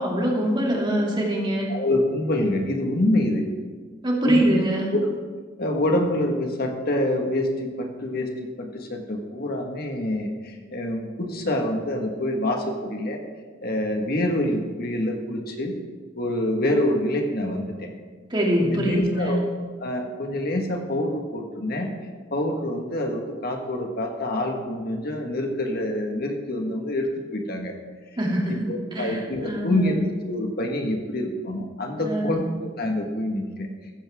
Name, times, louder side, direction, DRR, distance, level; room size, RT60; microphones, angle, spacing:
voice 1, 0.0-1.7 4.0-4.9 18.3-19.3 28.2-30.0 32.0-32.3, right 1 dB, 25° right, -2 dB, 2.8 m, -24 dB
voice 2, 1.7-3.5 4.2-4.6 4.9-5.0 5.6-8.3 8.6-13.2 13.6-15.8 16.2-17.9 18.6-19.4 19.8-21.9 22.3-27.7 28.5-32.4 32.8-33.7, left 1 dB, 55° left, 2 dB, 1.7 m, -26 dB
15.5 x 14.5 x 3.7 m, 1.5 s
head